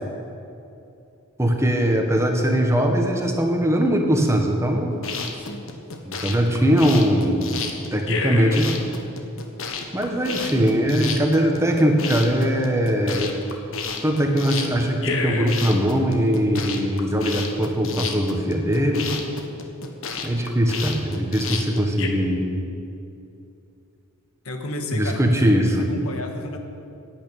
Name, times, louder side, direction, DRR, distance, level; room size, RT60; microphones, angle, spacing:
voice 1, 1.4-4.9 6.0-7.5 7.9-8.9 9.9-13.3 14.0-19.1 20.2-22.5 24.9-25.8, equal, 15° right, 2 dB, 1.4 m, -21 dB
sound 1, 4.9-22.1, left 5 dB, 70° left, 1.3 m, -31 dB
voice 2, 5.3-5.7 24.4-26.6, left 1 dB, 85° left, 4 dB, 1.6 m, -32 dB
11.5 x 9.2 x 9.1 m, 2.7 s
head